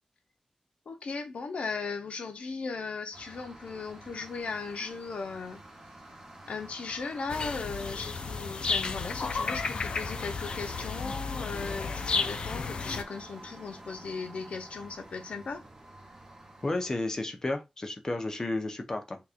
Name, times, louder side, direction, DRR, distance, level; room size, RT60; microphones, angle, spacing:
voice 1, 0.9-5.6 6.4-15.6, left 4 dB, 80° left, 0.7 m, -37 dB
sound 1, 3.1-16.9, right 1 dB, 20° right, 1.0 m, -48 dB
sound 2, 7.3-13.0, left 4 dB, 55° left, 0.3 m, -33 dB
voice 2, 16.6-19.2, left 2 dB, 30° left, 0.7 m, -32 dB
3.6 x 2.9 x 2.5 m
wide cardioid pair, 140°, 2 cm